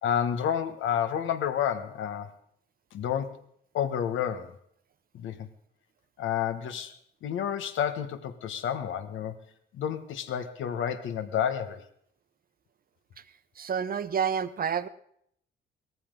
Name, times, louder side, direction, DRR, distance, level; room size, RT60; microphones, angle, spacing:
voice 1, 0.0-2.3 2.9-3.4 3.7-4.5 5.1-5.5 6.2-6.9 7.2-9.4 9.7-11.8, left 9 dB, 80° left, 9 dB, 1.4 m, -30 dB
voice 2, 13.6-14.9, right 7 dB, 45° right, 12 dB, 1.0 m, -29 dB
18.5 x 14.0 x 3.9 m, 0.68 s
cardioid pair, 90°, 20 cm